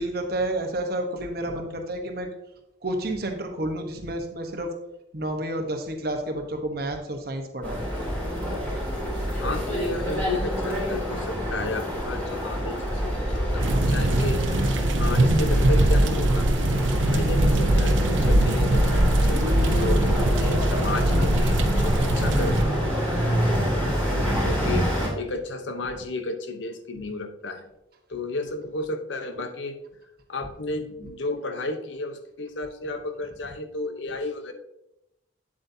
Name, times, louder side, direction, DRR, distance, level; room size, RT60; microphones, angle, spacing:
voice 1, 0.0-2.3 2.8-4.7 5.1-7.8 23.8-24.4, right 1 dB, 50° right, 4 dB, 1.1 m, -30 dB
sound 1, 7.6-25.1, equal, 10° left, 2.7 m, -27 dB
voice 2, 9.3-14.4 15.0-16.5 17.0-22.6 24.4-27.7 28.1-29.8 30.3-34.5, left 2 dB, 75° left, 7 dB, 0.8 m, -33 dB
sound 2, 13.6-22.6, right 1 dB, 80° right, 0.7 m, -22 dB
8.6 x 7.7 x 2.7 m, 0.87 s
head